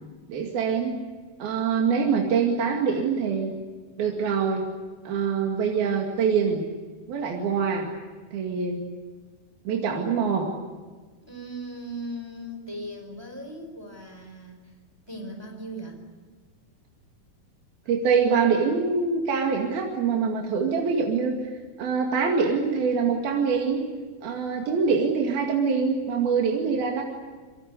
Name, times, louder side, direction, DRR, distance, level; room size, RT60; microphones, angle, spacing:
voice 1, 0.3-1.0 1.4-3.5 4.0-4.7 5.1-6.7 7.1-7.9 8.3-8.8 9.7-10.5 17.9-21.5 21.8-23.9 24.2-27.0, right 5 dB, 75° right, 0 dB, 4.2 m, -24 dB
voice 2, 11.2-14.7 15.1-16.0, right 1 dB, 5° right, 4 dB, 4.3 m, -38 dB
27.0 x 23.5 x 8.3 m, 1.4 s
omnidirectional pair, 4.3 m